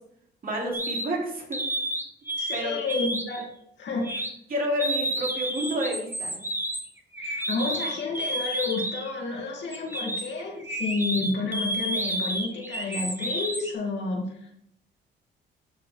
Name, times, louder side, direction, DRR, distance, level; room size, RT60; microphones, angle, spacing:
voice 1, 0.4-1.6 2.5-2.8 4.5-6.3, equal, 45° right, -2 dB, 3.3 m, -29 dB
sound 1, 0.7-1.1 1.5-2.6 2.9-3.4 4.0-4.3 4.8-9.1 9.7-13.7, right 1 dB, 10° right, 1.4 m, -30 dB
voice 2, 2.4-3.5 3.8-4.1 7.2-14.5, left 3 dB, 60° left, -1 dB, 2.5 m, -30 dB
12.0 x 4.7 x 3.4 m, 0.73 s
cardioid pair, 90°, 20 cm